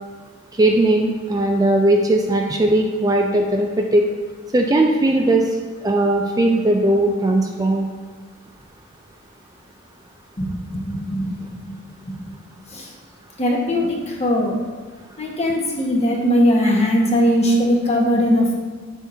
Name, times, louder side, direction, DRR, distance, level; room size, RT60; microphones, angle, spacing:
voice 1, 0.6-4.1 4.5-5.5 5.8-7.9, right 1 dB, 20° right, 1 dB, 0.4 m, -18 dB
voice 2, 10.4-11.3 11.6-11.7 12.7-12.8 13.4-14.6 15.2-18.5, equal, 30° left, -1 dB, 1.3 m, -19 dB
8.3 x 7.1 x 2.8 m, 1.5 s
head